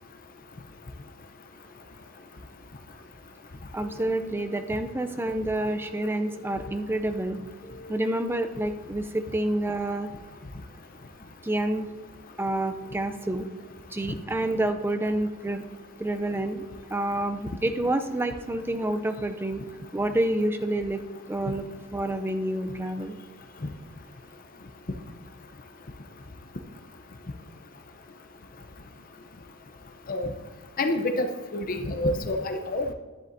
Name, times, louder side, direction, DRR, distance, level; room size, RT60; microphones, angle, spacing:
voice 1, 3.7-7.4 7.9-10.1 11.4-11.9 12.4-13.5 13.9-15.6 16.0-16.6 16.9-19.6 19.9-21.0 21.3-21.7 21.9-23.2, right 1 dB, 10° right, 8 dB, 0.4 m, -28 dB
sound 1, 3.8-4.7 5.6-6.6 7.6-8.6, left 2 dB, 15° left, 1.0 m, -45 dB
voice 2, 30.8-32.9, left 1 dB, 45° left, 6 dB, 0.7 m, -28 dB
10.5 x 10.0 x 2.7 m, 1.3 s
head